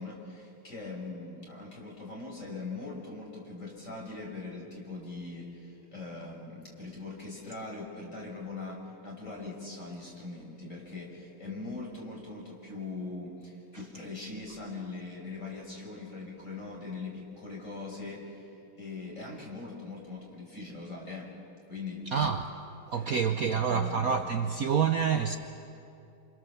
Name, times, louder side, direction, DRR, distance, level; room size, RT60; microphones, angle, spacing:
voice 1, 0.0-21.3 21.7-22.0 22.9-23.2 23.5-24.0, left 3 dB, 40° left, 6.3 m, -41 dB
voice 2, 22.1-22.6 22.9-25.4, right 6 dB, 55° right, 1.2 m, -27 dB
28.0 x 28.0 x 7.2 m
omnidirectional pair, 2.2 m